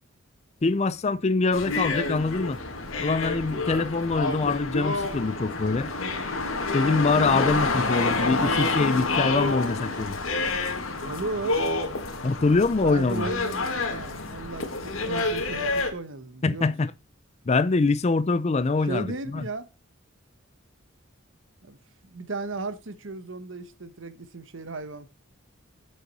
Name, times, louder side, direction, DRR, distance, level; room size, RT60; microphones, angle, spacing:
voice 1, 0.6-2.6 3.0-5.9 6.7-10.2 12.2-13.3 16.4-16.9 17.5-19.4, left 3 dB, 30° left, 0.4 m, -24 dB
sound 1, 1.5-15.9, left 3 dB, 75° left, 1.8 m, -28 dB
voice 2, 10.9-11.6 12.8-16.7 18.8-19.7 21.6-21.8 22.0-25.1, right 3 dB, 65° right, 1.1 m, -35 dB
8.0 x 7.6 x 4.1 m
head